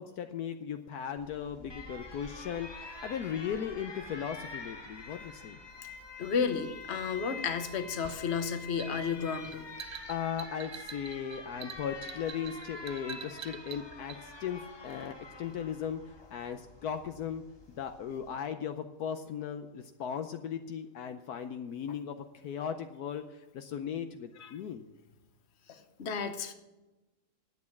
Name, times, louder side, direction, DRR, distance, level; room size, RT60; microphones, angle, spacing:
voice 1, 0.0-5.6 10.1-24.8, left 8 dB, 75° left, 7 dB, 1.2 m, -37 dB
Alarm, 1.2-18.4, left 3 dB, 20° left, 0.8 m, -47 dB
voice 2, 6.2-9.7 24.4-24.5 25.7-26.5, left 6 dB, 45° left, 7 dB, 1.2 m, -33 dB
sound 1, 8.0-14.2, right 6 dB, 70° right, 0.4 m, -46 dB
10.5 x 8.5 x 7.1 m, 1.1 s
omnidirectional pair, 1.7 m